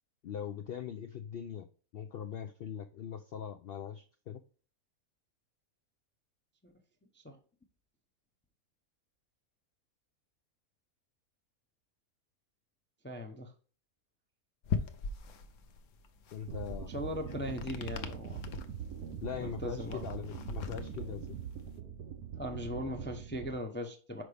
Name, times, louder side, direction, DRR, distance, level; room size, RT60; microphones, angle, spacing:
voice 1, 0.2-1.7 1.9-4.4 16.3-16.9 19.2-21.4, left 8 dB, 85° left, 0.5 m, -41 dB
voice 2, 13.0-13.5 16.9-18.5 19.4-20.0 22.4-24.2, left 1 dB, 15° left, 0.4 m, -39 dB
sound 1, 14.6-21.8, left 5 dB, 60° left, 1.0 m, -41 dB
sound 2, 16.5-23.5, right 8 dB, 85° right, 1.3 m, -43 dB
6.3 x 4.9 x 3.3 m
omnidirectional pair, 1.6 m